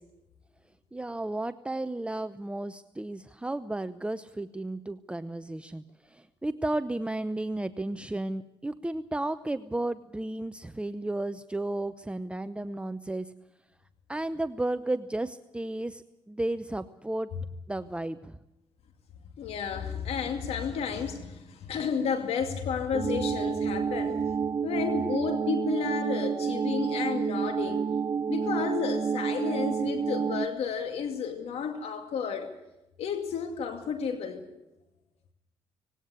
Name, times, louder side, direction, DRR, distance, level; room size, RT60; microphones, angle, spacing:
voice 1, 0.9-13.3 14.1-17.3 17.7-18.4, right 2 dB, 10° right, 12 dB, 0.8 m, -33 dB
voice 2, 19.4-24.2 24.6-27.8 28.3-32.5 33.0-34.4, left 6 dB, 80° left, 7 dB, 2.4 m, -32 dB
sound 1, 22.9-30.5, right 6 dB, 40° right, 0.9 m, -29 dB
19.0 x 17.5 x 9.6 m, 0.93 s
cardioid pair, 75°, 10 cm